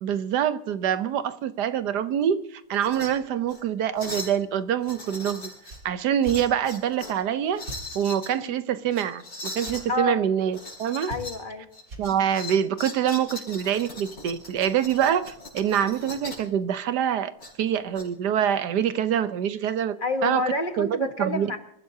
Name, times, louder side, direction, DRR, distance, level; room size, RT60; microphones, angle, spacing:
voice 1, 0.0-5.5 5.8-7.6 7.9-9.2 9.5-11.1 12.0-17.3 17.6-19.9 20.2-20.4 20.8-21.5, right 9 dB, 70° right, 1.3 m, -25 dB
sound 1, 2.7-3.1 3.4-3.6 4.0-4.4 4.8-5.8 6.2-7.2 7.5-8.3 8.9-9.9 10.5-11.4 11.7-16.5 17.4-18.0, left 1 dB, 55° left, 6.0 m, -39 dB
sound 2, 5.6-5.8 6.2-6.4 7.6-7.8 9.6-9.8 11.1-11.5 11.9-12.1, right 1 dB, 50° right, 2.7 m, -39 dB
voice 2, 9.9-10.2 11.1-11.7 20.0-21.6, left 2 dB, 30° left, 1.4 m, -28 dB
27.5 x 15.0 x 2.8 m
omnidirectional pair, 1.9 m